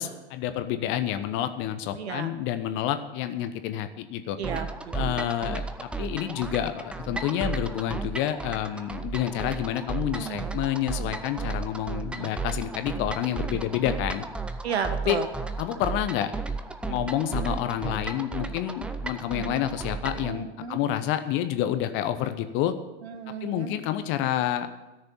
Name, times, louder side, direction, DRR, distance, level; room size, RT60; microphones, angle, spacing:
voice 1, 0.0-4.4 4.9-14.2 15.1-15.2 15.6-16.3 16.8-22.7 23.4-24.7, left 11 dB, 35° left, 10 dB, 1.0 m, -29 dB
voice 2, 1.9-2.3 4.4-5.3 10.2-10.5 12.2-12.3 13.4-13.6 14.6-15.3 17.3-17.6 19.4-19.6 20.2-20.8 23.0-23.7, right 7 dB, 70° right, 9 dB, 1.5 m, -34 dB
sound 1, 4.4-20.3, right 4 dB, 5° right, 0.4 m, -34 dB
13.5 x 6.7 x 8.6 m, 1.1 s
figure-of-eight pair, 100°, 34 cm